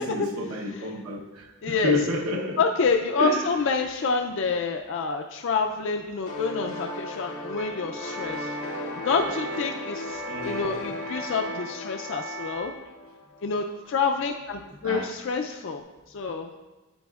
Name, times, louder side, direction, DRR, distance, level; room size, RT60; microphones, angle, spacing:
voice 1, 0.0-2.6 3.2-3.4 10.3-10.8 14.8-15.1, left 2 dB, 75° right, 0 dB, 0.9 m, -29 dB
voice 2, 1.6-2.0 2.6-12.7 13.4-16.5, left 4 dB, 55° left, 4 dB, 0.4 m, -28 dB
sound 1, 6.3-13.7, left 1 dB, 80° left, 0.8 m, -36 dB
sound 2, 7.6-12.8, right 2 dB, 35° right, 0.3 m, -39 dB
9.2 x 8.9 x 2.4 m, 1.2 s
head